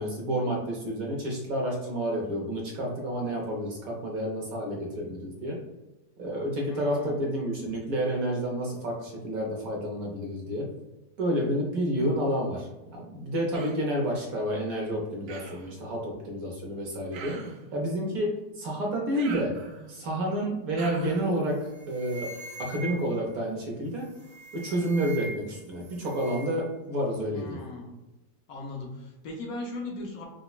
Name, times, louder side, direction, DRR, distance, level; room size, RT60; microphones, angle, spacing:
voice 1, 0.0-5.6 6.2-10.7 11.2-17.4 17.7-19.6 19.9-22.3 22.6-24.1 24.5-27.6, equal, 65° right, -1 dB, 1.1 m, -30 dB
voice 2, 6.7-7.2 27.3-27.9 28.5-30.2, left 2 dB, 70° left, 0 dB, 1.0 m, -38 dB
Human voice, 13.5-13.9 15.3-15.7 17.1-17.7 19.1-20.0 20.8-21.3, right 5 dB, 90° right, 1.2 m, -42 dB
sound 1, 21.1-21.3 21.6-23.2 24.1-25.5 25.8-26.6, right 2 dB, 25° right, 0.9 m, -43 dB
4.9 x 2.1 x 2.3 m, 1.0 s
omnidirectional pair, 1.8 m